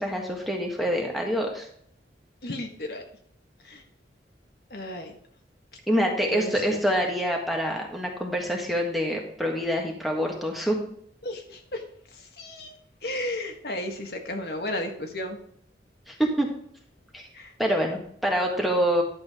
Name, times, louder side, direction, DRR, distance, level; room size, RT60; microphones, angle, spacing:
voice 1, 0.0-1.7 5.9-10.8 16.1-16.5 17.1-17.2 17.6-19.0, equal, ahead, 0 dB, 1.6 m, -26 dB
voice 2, 2.4-3.0 3.6-3.8 4.7-5.1 6.3-6.8 11.2-11.8 12.4-12.8 13.0-15.4 17.3-17.5, left 1 dB, 60° left, 3 dB, 1.5 m, -33 dB
11.5 x 7.6 x 3.7 m, 0.65 s
head